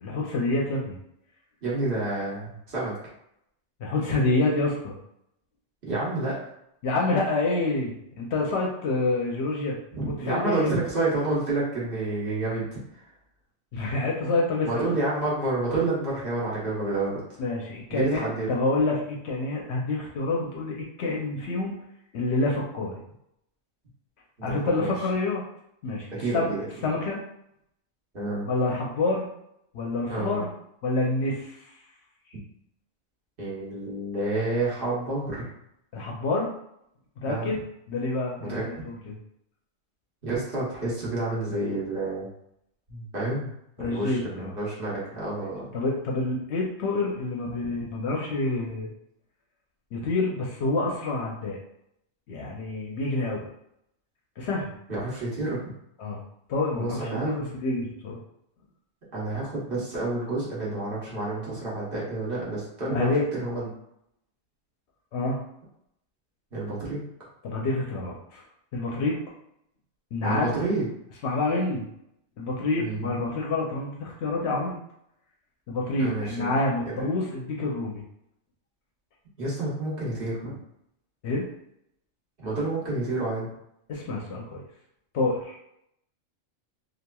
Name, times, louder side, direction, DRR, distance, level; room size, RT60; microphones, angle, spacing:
voice 1, 0.0-1.0 3.8-4.9 6.8-9.8 10.2-10.8 13.7-14.8 17.4-21.7 22.1-23.0 24.4-25.4 25.8-26.1 26.3-26.5 26.8-27.2 28.4-29.3 29.7-30.5 30.8-31.6 35.9-36.5 37.2-37.5 37.9-39.2 43.8-44.5 45.7-48.9 49.9-51.6 52.3-53.4 54.4-54.7 56.0-56.2 56.5-58.2 62.9-63.2 65.1-65.4 67.4-68.4 68.7-69.2 70.1-70.5 71.2-71.8 72.4-74.8 75.7-78.0 81.2-81.4 83.9-84.6 85.1-85.6, left 2 dB, 65° left, -2 dB, 0.8 m, -27 dB
voice 2, 1.6-2.9 5.8-6.4 9.9-12.7 14.7-17.4 17.9-18.5 24.4-24.9 26.2-26.7 28.1-28.5 30.1-30.4 33.4-35.5 37.2-37.5 38.4-38.6 40.2-42.3 42.9-43.5 43.8-45.7 54.9-55.6 56.7-57.5 59.1-63.1 63.4-63.7 66.5-67.0 70.2-70.9 72.8-73.1 76.0-76.6 76.8-77.1 79.4-80.5 82.4-83.5, right 2 dB, 50° right, -7 dB, 1.0 m, -29 dB
3.0 x 2.4 x 2.2 m, 0.76 s
omnidirectional pair, 1.3 m